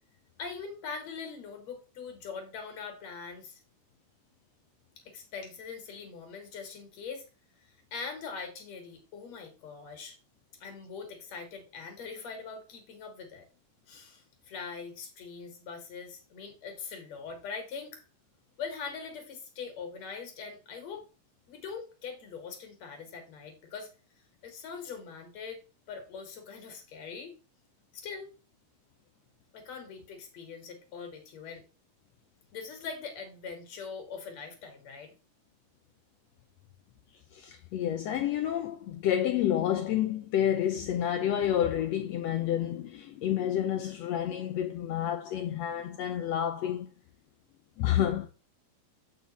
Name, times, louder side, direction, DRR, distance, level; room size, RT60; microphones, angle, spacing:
voice 1, 0.4-3.6 5.1-7.3 7.6-10.2 10.6-13.5 13.9-18.0 18.6-21.1 21.5-23.9 24.4-25.6 25.9-27.4 27.9-28.3 29.5-31.6 32.5-35.1, left 5 dB, 60° left, 2.4 m, -42 dB
voice 2, 37.3-46.9 47.8-48.3, left 10 dB, 85° left, 1.5 m, -29 dB
7.8 x 4.9 x 4.1 m
omnidirectional pair, 3.7 m